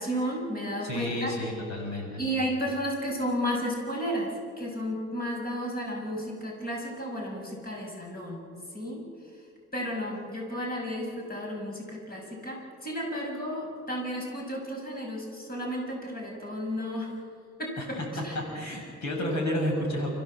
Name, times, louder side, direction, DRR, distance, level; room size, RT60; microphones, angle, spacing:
voice 1, 0.0-1.4 2.2-8.5 8.7-9.0 9.7-17.1 17.6-18.0 18.2-18.4, equal, 30° left, 0 dB, 5.7 m, -33 dB
voice 2, 0.8-2.2 17.8-17.9 18.3-20.1, left 1 dB, 65° left, 1 dB, 6.4 m, -31 dB
29.5 x 15.0 x 7.4 m, 2.1 s
cardioid pair, 90°, 30 cm